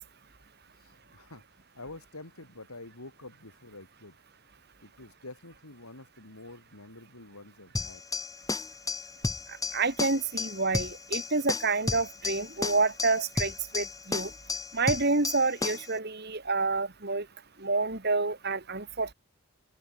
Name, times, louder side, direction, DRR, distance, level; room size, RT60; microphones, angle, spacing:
voice 1, 0.8-1.4 1.7-4.2 4.8-8.0, left 2 dB, 80° left, 4.7 m, -47 dB
sound 1, 7.8-16.0, left 3 dB, 15° left, 1.8 m, -33 dB
voice 2, 9.7-14.3 14.7-17.2 17.6-19.1, right 3 dB, 45° right, 1.9 m, -28 dB
open air
head